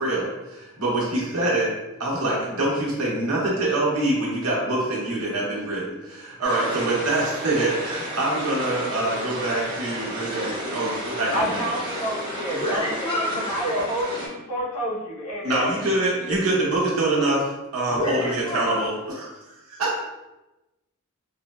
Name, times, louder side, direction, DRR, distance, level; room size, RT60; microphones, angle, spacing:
voice 1, 0.0-1.7 2.0-11.7 15.4-20.1, right 2 dB, 80° right, -5 dB, 0.8 m, -25 dB
sound 1, 6.4-14.3, right 1 dB, 20° right, 0.6 m, -33 dB
voice 2, 11.3-15.7 16.3-16.4, equal, 85° left, -4 dB, 0.7 m, -29 dB
voice 3, 12.5-13.5 17.9-18.8, equal, 25° left, -9 dB, 0.6 m, -28 dB
3.2 x 2.0 x 2.2 m, 1.0 s
head